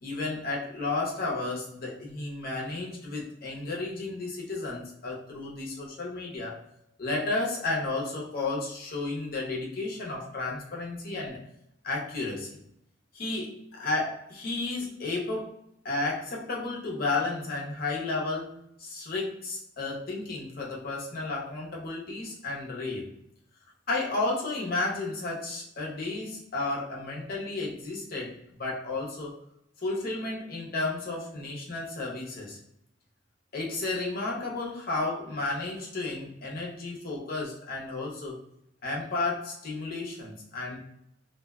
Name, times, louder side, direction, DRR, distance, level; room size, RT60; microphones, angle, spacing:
voice 1, 0.0-6.6 7.0-11.4 11.8-12.5 13.1-15.5 15.8-23.1 23.9-29.4 29.8-32.6 33.5-38.4 38.8-40.8, left 3 dB, 55° left, -3 dB, 0.7 m, -32 dB
2.6 x 2.1 x 2.3 m, 0.77 s
head